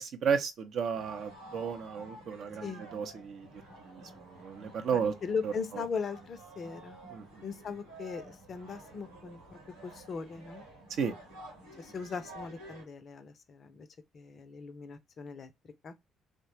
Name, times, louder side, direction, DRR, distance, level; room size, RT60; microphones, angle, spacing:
voice 1, 0.0-5.1 5.4-5.5 7.1-7.3 11.0-11.2, right 6 dB, 55° right, 0.5 m, -33 dB
sound 1, 0.9-12.8, right 1 dB, 80° right, 1.0 m, -51 dB
voice 2, 4.9-7.0 7.4-10.6 11.8-13.9 14.1-15.5 15.8-15.9, left 5 dB, 45° left, 0.4 m, -39 dB
3.0 x 2.0 x 2.8 m
figure-of-eight pair, 45°, 0 cm